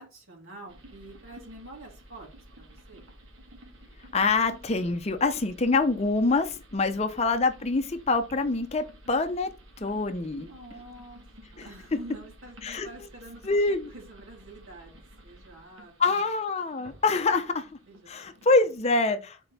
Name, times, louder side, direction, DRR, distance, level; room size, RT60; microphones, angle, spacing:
voice 1, 0.0-3.1 10.3-11.2 11.5-16.2 17.9-18.9 19.1-19.2 19.4-19.5, right 2 dB, 90° right, 2.7 m, -48 dB
sound 1, 0.7-18.9, equal, 75° right, 1.6 m, -52 dB
voice 2, 4.1-9.5 9.8-10.5 12.6-12.9 13.5-13.9 16.0-17.7 18.1-19.4, left 3 dB, 30° left, 0.6 m, -25 dB
6.1 x 4.4 x 4.1 m
head